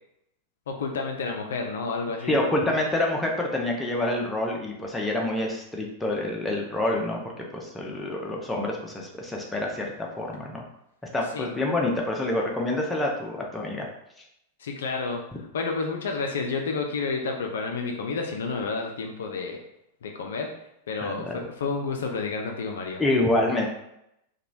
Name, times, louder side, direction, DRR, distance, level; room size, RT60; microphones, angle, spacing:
voice 1, 0.7-2.4 11.3-11.5 14.6-15.2 15.5-19.6 20.0-20.5 20.9-23.0, left 4 dB, 65° left, 2 dB, 0.3 m, -30 dB
voice 2, 2.2-10.6 11.1-13.9 21.0-21.4 23.0-23.7, left 1 dB, 10° left, -1 dB, 0.6 m, -27 dB
2.9 x 2.2 x 2.6 m, 0.81 s
figure-of-eight pair, 90°, 0 cm